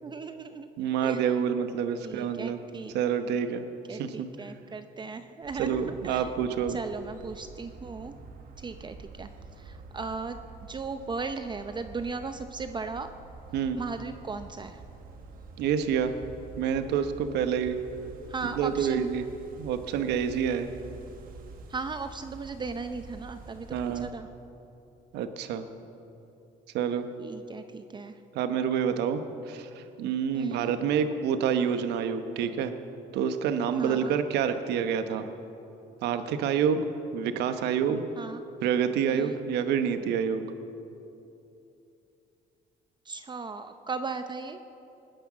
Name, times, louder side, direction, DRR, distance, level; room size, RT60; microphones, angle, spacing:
voice 1, 0.0-0.7 1.0-1.4 2.0-2.9 3.9-6.3 6.7-8.1 8.6-9.3 9.6-13.1 13.7-14.8 18.3-19.1 21.7-24.3 27.2-28.2 30.3-30.7 33.8-34.2 38.2-38.4 39.1-39.4 43.0-44.6, right 4 dB, 25° right, 8 dB, 0.7 m, -37 dB
voice 2, 0.8-2.6 2.9-3.6 3.9-4.3 5.6-6.8 13.5-13.8 15.6-16.1 16.6-17.8 18.6-19.2 19.6-20.7 23.7-24.1 25.1-25.7 26.7-27.1 28.3-29.2 29.5-32.7 33.1-35.2 36.0-36.8 37.1-38.0 38.6-40.4, right 7 dB, 80° right, 9 dB, 1.1 m, -27 dB
sound 1, 5.4-24.1, right 4 dB, 60° right, 1.7 m, -47 dB
19.5 x 10.0 x 7.3 m, 2.8 s
cardioid pair, 110°, 17 cm